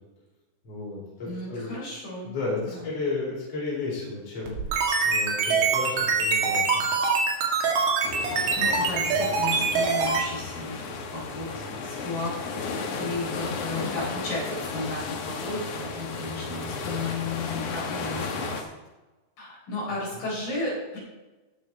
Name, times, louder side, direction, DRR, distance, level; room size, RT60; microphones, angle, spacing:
voice 1, 0.6-1.7 2.2-6.9 20.1-20.3, left 3 dB, 35° left, -5 dB, 5.0 m, -33 dB
voice 2, 1.3-2.3 2.6-2.9 8.3-12.7 12.9-18.7 19.4-21.0, left 2 dB, 55° left, -6 dB, 5.6 m, -34 dB
sound 1, 4.5-10.2, right 4 dB, 85° right, 4.4 m, -24 dB
sound 2, 8.0-18.6, left 4 dB, 85° left, 1.4 m, -34 dB
16.5 x 7.0 x 4.4 m, 1.2 s
omnidirectional pair, 4.9 m